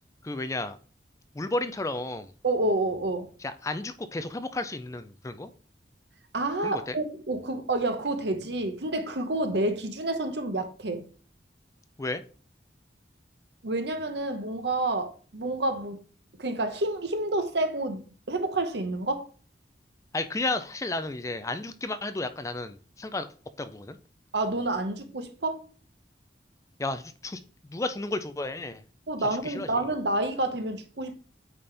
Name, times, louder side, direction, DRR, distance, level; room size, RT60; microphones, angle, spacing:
voice 1, 0.2-0.8 1.3-2.3 3.4-5.5 6.6-7.0 12.0-12.2 20.1-23.3 23.6-24.0 26.8-28.8 29.4-29.8, left 2 dB, 20° left, 0.4 m, -33 dB
voice 2, 2.4-3.3 6.3-11.1 13.6-16.0 16.4-19.3 24.3-25.6 29.1-31.2, right 2 dB, 75° right, 1.1 m, -29 dB
8.8 x 4.3 x 3.4 m
head